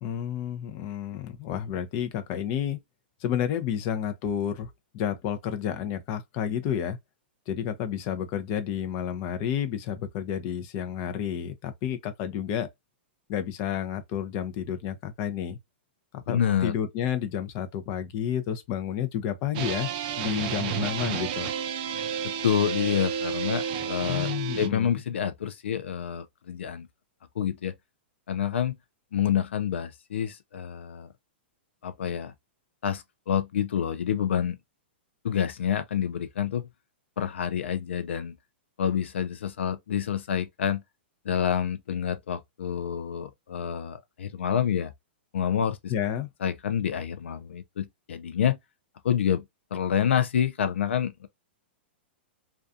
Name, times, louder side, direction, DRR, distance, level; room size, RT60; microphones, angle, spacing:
voice 1, 0.0-2.8 3.2-7.0 7.5-12.7 13.3-15.6 16.3-19.9 20.2-21.5 24.1-24.9 45.9-46.3, left 9 dB, 40° left, 0.5 m, -30 dB
voice 2, 16.3-16.7 22.2-24.3 24.6-26.9 27.4-27.7 28.3-28.8 29.1-31.1 31.8-32.3 32.8-34.6 35.2-36.6 37.2-38.3 38.8-40.8 41.2-44.9 45.3-45.9 46.4-48.6 49.0-49.4 49.7-51.3, left 8 dB, 85° left, 0.4 m, -28 dB
sound 1, 19.5-24.7, right 7 dB, 45° right, 0.5 m, -31 dB
2.4 x 2.3 x 2.5 m
hypercardioid pair, 140°, 6 cm